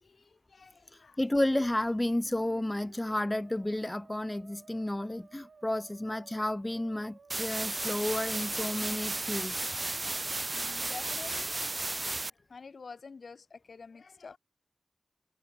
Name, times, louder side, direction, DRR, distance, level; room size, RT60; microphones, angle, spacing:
voice 1, 0.0-1.2 9.7-14.4, left 4 dB, 85° left, 2.3 m, -50 dB
voice 2, 1.2-9.6, left 1 dB, 20° left, 1.0 m, -31 dB
Musical instrument, 1.5-10.3, right 4 dB, 85° right, 2.6 m, -58 dB
sound 1, 7.3-12.3, right 2 dB, 40° right, 1.0 m, -34 dB
wide cardioid pair, 70°, 0 cm